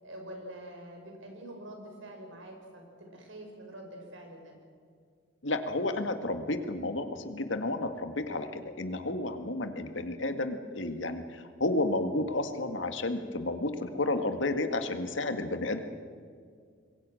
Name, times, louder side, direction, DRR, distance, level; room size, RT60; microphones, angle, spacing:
voice 1, 0.0-4.5, right 1 dB, 80° right, 2 dB, 6.1 m, -46 dB
voice 2, 5.4-15.8, left 2 dB, 75° left, 7 dB, 1.9 m, -31 dB
26.5 x 22.0 x 6.4 m, 2.1 s
head